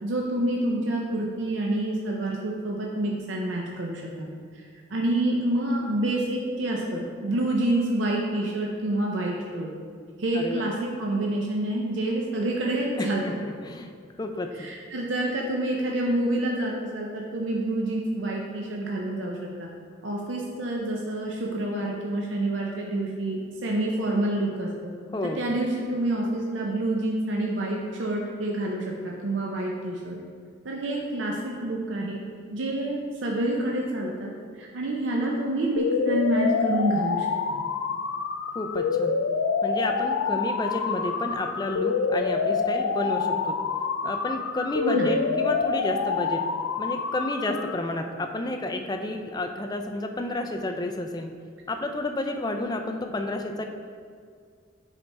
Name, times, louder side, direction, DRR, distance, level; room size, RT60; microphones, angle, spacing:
voice 1, 0.0-4.3 4.5-4.6 4.9-9.7 10.2-13.2 14.6-19.7 20.0-24.9 25.4-28.9 29.2-30.2 30.6-32.2 32.5-34.3 34.6-37.6 44.8-45.2, right 1 dB, 65° right, -2 dB, 0.6 m, -27 dB
voice 2, 13.0-13.3 13.6-13.9 14.2-14.7 25.1-25.4 38.5-39.2 39.6-43.6 44.0-46.4 46.8-51.3 51.7-53.6, left 2 dB, 20° left, 4 dB, 0.4 m, -30 dB
sound 1, 35.8-47.8, left 5 dB, 90° left, 0.4 m, -27 dB
7.1 x 4.1 x 3.4 m, 2.1 s
head